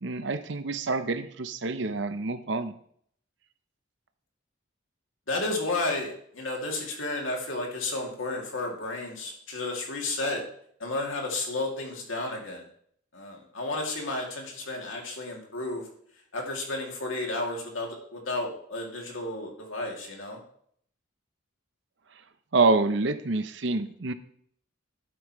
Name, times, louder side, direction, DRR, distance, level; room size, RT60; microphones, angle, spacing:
voice 1, 0.0-2.8 22.5-24.1, right 3 dB, 65° right, 11 dB, 0.8 m, -27 dB
voice 2, 5.3-10.4 10.8-12.7 13.1-15.9 16.3-20.4, left 2 dB, 90° left, 0 dB, 2.6 m, -32 dB
12.0 x 8.6 x 3.2 m, 0.63 s
head